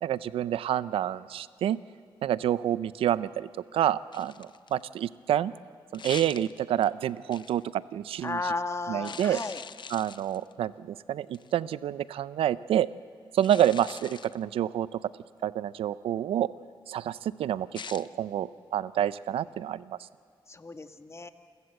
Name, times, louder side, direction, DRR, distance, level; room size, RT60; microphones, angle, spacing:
voice 1, 0.0-1.8 2.2-5.5 5.9-8.4 8.9-9.4 9.9-12.9 13.3-15.0 15.4-16.5 16.9-20.0, right 11 dB, 85° right, 17 dB, 0.5 m, -28 dB
sound 1, 4.1-4.8 5.9-6.9 7.3-7.6 9.0-10.5 11.3-11.6 13.4-14.4 17.8-18.1, left 6 dB, 55° left, 0.8 m, -43 dB
voice 2, 8.2-9.6 20.5-21.3, left 3 dB, 30° left, 8 dB, 1.6 m, -34 dB
28.5 x 15.0 x 7.8 m, 2.2 s
cardioid pair, 55°, 9 cm